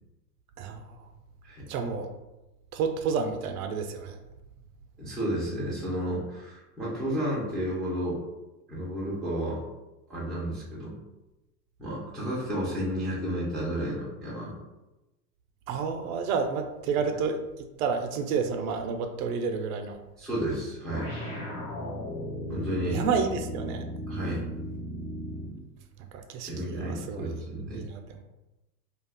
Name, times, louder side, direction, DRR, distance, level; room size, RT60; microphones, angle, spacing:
voice 1, 1.7-2.1 2.7-4.2 15.7-17.4 17.8-20.0 22.9-23.8 26.1-27.3 27.7-28.2, right 5 dB, 60° right, 6 dB, 0.5 m, -30 dB
voice 2, 5.0-8.2 8.7-9.6 10.1-10.9 11.8-14.5 20.2-21.1 22.5-23.0 24.1-24.4 26.4-27.8, equal, ahead, -8 dB, 0.4 m, -32 dB
sound 1, 20.9-25.6, equal, 45° left, 1.2 m, -36 dB
2.4 x 2.3 x 3.4 m, 1.0 s
hypercardioid pair, 115°, 50 cm